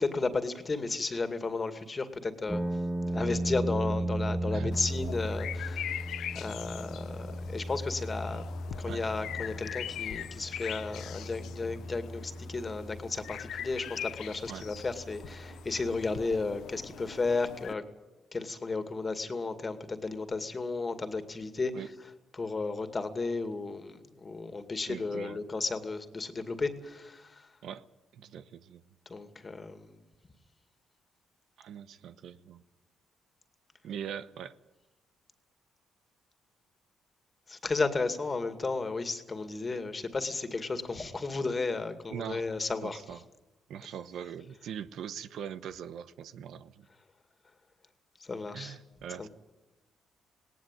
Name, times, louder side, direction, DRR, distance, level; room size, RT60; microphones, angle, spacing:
voice 1, 0.0-2.6 3.1-6.0 6.3-8.5 8.8-17.8 18.3-21.7 22.3-27.5 29.1-30.0 37.5-43.0 48.2-48.8 49.2-49.3, left 3 dB, 30° left, 9 dB, 2.2 m, -33 dB
sound 1, 2.5-16.5, right 1 dB, 10° right, 1.3 m, -37 dB
sound 2, 3.0-17.8, right 5 dB, 60° right, 4.1 m, -56 dB
sound 3, 4.7-17.7, left 10 dB, 75° left, 0.8 m, -42 dB
voice 2, 24.9-25.4 27.6-27.9 28.1-28.8 31.6-32.6 33.8-34.6 42.1-42.5 42.8-43.2 43.7-46.9 48.5-49.3, right 8 dB, 75° right, 13 dB, 0.9 m, -41 dB
19.0 x 18.5 x 9.1 m, 1.0 s
cardioid pair, 90°, 0 cm